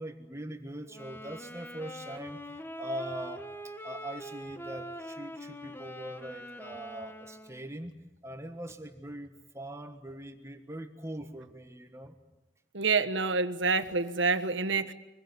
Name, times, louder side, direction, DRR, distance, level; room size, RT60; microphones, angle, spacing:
voice 1, 0.0-2.4 2.8-7.9 8.2-12.1, right 1 dB, 15° right, 6 dB, 1.5 m, -42 dB
sound 1, 0.9-7.7, equal, 10° left, 1.2 m, -43 dB
voice 2, 12.7-14.9, right 4 dB, 90° right, 8 dB, 1.4 m, -27 dB
25.5 x 21.0 x 9.8 m, 1.0 s
head